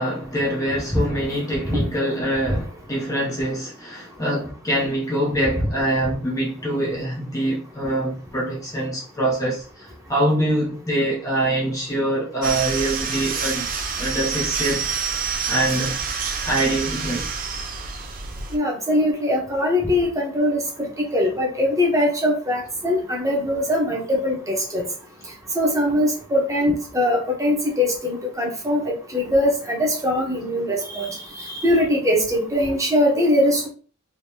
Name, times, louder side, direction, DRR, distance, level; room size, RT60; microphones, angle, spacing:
voice 1, 0.0-13.7 14.0-14.9 15.5-17.3, right 1 dB, 15° left, 0.6 m, -24 dB
sound 1, 12.4-18.6, right 5 dB, 40° right, 0.4 m, -27 dB
voice 2, 18.5-20.9 21.1-24.8 25.5-33.7, left 1 dB, 15° right, 0.9 m, -21 dB
3.4 x 2.8 x 2.8 m
head